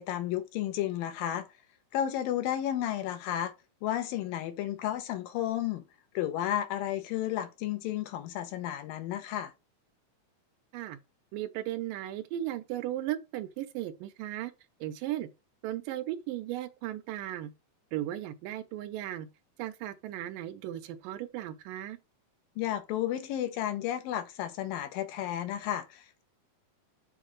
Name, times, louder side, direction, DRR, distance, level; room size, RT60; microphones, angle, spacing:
voice 1, 0.0-1.5 1.9-3.5 3.8-5.8 6.1-9.5 22.6-26.2, left 11 dB, 80° left, 2.6 m, -32 dB
voice 2, 11.3-14.5 14.8-15.3 15.6-17.5 17.9-19.3 19.6-22.0, right 13 dB, 80° right, 2.2 m, -36 dB
7.2 x 3.7 x 4.9 m
omnidirectional pair, 4.1 m